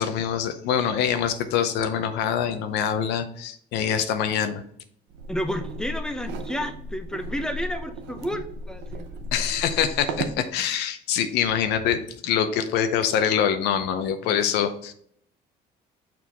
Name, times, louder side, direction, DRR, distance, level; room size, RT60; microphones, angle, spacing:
voice 1, 0.0-4.6 9.3-14.9, left 8 dB, 90° left, 9 dB, 0.6 m, -25 dB
sound 1, 5.1-10.4, right 1 dB, 90° right, 0.7 m, -35 dB
voice 2, 5.3-9.1 14.2-14.4, equal, 5° left, 7 dB, 0.7 m, -31 dB
6.0 x 4.5 x 3.4 m, 0.66 s
cardioid pair, 110°, 17 cm